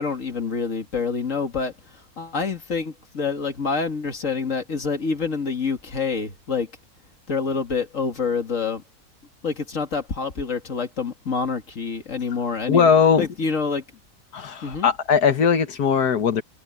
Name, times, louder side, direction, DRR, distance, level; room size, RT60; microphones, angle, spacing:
voice 1, 0.0-6.7 7.3-8.8 9.4-12.9 13.2-13.8 14.6-14.9, left 5 dB, 55° left, 2.5 m, -27 dB
voice 2, 12.7-13.3 14.3-16.4, left 6 dB, 90° left, 1.9 m, -19 dB
open air
omnidirectional pair, 1.6 m